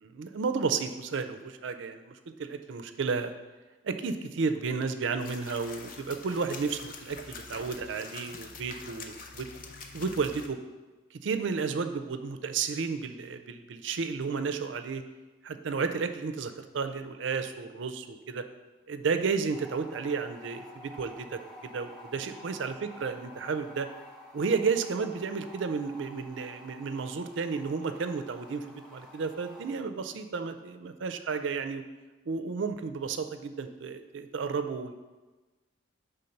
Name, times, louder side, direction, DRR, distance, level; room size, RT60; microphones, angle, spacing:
voice 1, 0.1-3.3 3.8-9.5 9.9-10.6 11.1-15.0 15.4-18.4 18.9-23.9 24.3-31.8 32.3-34.9, right 5 dB, 70° right, 9 dB, 0.4 m, -32 dB
sound 1, 5.2-10.5, left 4 dB, 45° left, 0.5 m, -45 dB
sound 2, 19.5-29.7, equal, 5° left, 0.8 m, -50 dB
5.3 x 3.5 x 5.7 m, 1.2 s
head